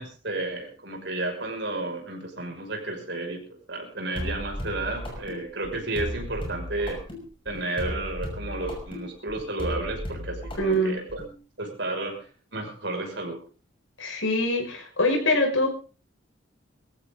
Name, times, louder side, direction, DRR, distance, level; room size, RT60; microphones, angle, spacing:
voice 1, 0.0-7.0 7.4-11.2 11.6-13.4, right 2 dB, 60° right, 2 dB, 6.1 m, -32 dB
sound 1, 4.2-11.3, equal, 25° left, 5.9 m, -35 dB
voice 2, 10.6-11.0 14.0-15.7, left 1 dB, 80° left, 3 dB, 5.7 m, -24 dB
22.5 x 14.5 x 3.9 m, 0.37 s
head